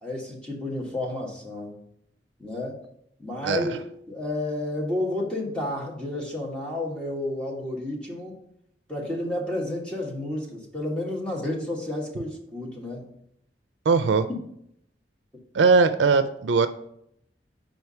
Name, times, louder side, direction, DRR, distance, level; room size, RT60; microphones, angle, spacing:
voice 1, 0.0-1.7 2.4-2.8 3.2-3.8 4.1-8.4 8.9-13.1 14.3-14.4, left 1 dB, 5° left, -3 dB, 1.5 m, -31 dB
voice 2, 13.9-14.3 15.5-16.7, right 4 dB, 85° right, 10 dB, 0.4 m, -20 dB
5.2 x 4.6 x 5.5 m, 0.72 s
head